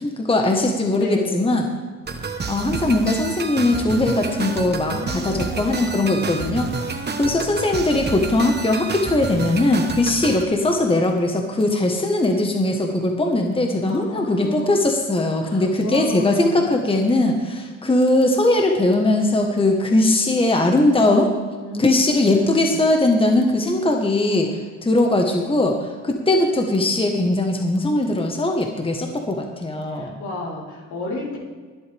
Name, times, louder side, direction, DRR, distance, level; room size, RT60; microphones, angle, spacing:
voice 1, 0.0-1.7 2.5-21.4 21.8-24.5 24.8-25.8 26.0-30.1, left 2 dB, 20° left, 3 dB, 1.4 m, -20 dB
voice 2, 1.0-1.5 4.8-6.2 13.9-14.7 15.4-16.7 19.8-20.5 21.6-22.9 29.9-31.4, left 2 dB, 80° left, -4 dB, 4.0 m, -33 dB
sound 1, 2.1-10.4, right 4 dB, 35° right, 1.3 m, -29 dB
23.0 x 8.0 x 3.5 m, 1.5 s
cardioid pair, 90°, 30 cm